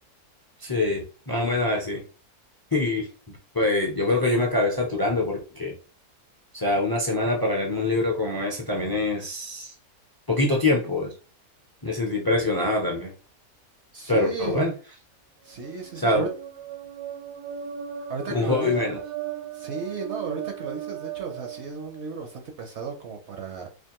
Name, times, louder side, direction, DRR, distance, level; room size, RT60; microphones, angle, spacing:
voice 1, 0.6-2.0 2.7-3.1 3.5-5.7 6.5-9.7 10.3-11.1 11.8-13.1 14.1-14.7 16.0-16.2 18.3-19.0, left 2 dB, 35° left, 0 dB, 0.3 m, -24 dB
voice 2, 13.9-14.7 15.4-16.3 18.1-18.8 19.5-23.7, right 4 dB, 60° right, 3 dB, 0.8 m, -34 dB
sound 1, 15.5-22.3, right 9 dB, 85° right, 1.2 m, -37 dB
4.3 x 2.5 x 2.9 m, 0.35 s
omnidirectional pair, 1.6 m